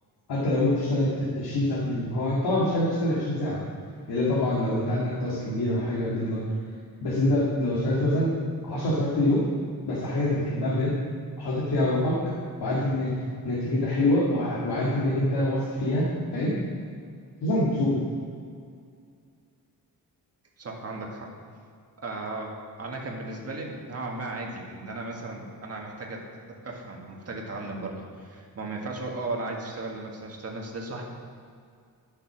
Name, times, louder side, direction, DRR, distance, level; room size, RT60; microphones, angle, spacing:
voice 1, 0.3-3.6 4.1-6.5 7.0-8.3 8.6-9.4 9.9-10.9 11.4-12.2 12.6-13.1 13.4-16.6 17.4-18.0, left 1 dB, 90° left, -7 dB, 2.2 m, -25 dB
voice 2, 20.6-21.3 22.0-31.0, right 2 dB, 40° right, 0 dB, 1.7 m, -36 dB
11.5 x 7.1 x 6.0 m, 2.3 s
wide cardioid pair, 160°, 37 cm